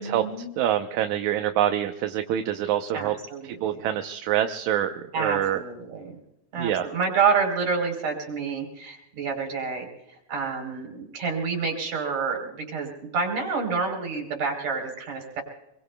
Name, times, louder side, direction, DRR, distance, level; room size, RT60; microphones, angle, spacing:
voice 1, 0.0-0.5 2.9-3.8 5.1-6.2 6.5-9.9 10.3-15.4, right 5 dB, 65° right, 2 dB, 5.1 m, -28 dB
voice 2, 0.6-3.1 3.6-5.6 6.6-6.9, right 11 dB, 80° right, 6 dB, 2.2 m, -25 dB
27.0 x 22.5 x 2.3 m, 0.88 s
omnidirectional pair, 3.4 m